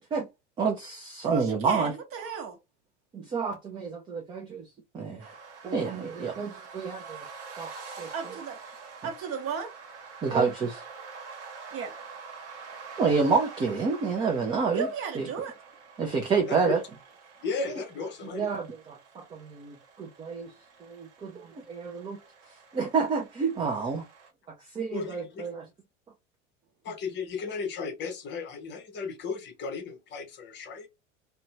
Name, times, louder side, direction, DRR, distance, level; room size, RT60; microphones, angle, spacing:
voice 1, 0.6-1.9 3.1-5.4 5.6-7.3 7.6-8.3 10.2-10.9 13.0-14.9 15.1-15.3 16.0-16.8 17.7-17.8 18.3-20.5 20.8-24.1 24.6-25.7, right 5 dB, 15° right, 0.4 m, -29 dB
voice 2, 1.3-2.6 8.1-8.6 9.0-9.7 11.7-12.0 14.7-15.5, right 6 dB, 35° right, 0.9 m, -34 dB
sound 1, 5.2-24.3, right 5 dB, 65° right, 1.0 m, -47 dB
voice 3, 17.4-18.4 24.9-25.5 26.8-30.9, left 4 dB, 30° left, 0.7 m, -35 dB
2.6 x 2.1 x 2.7 m
figure-of-eight pair, 85°, 38 cm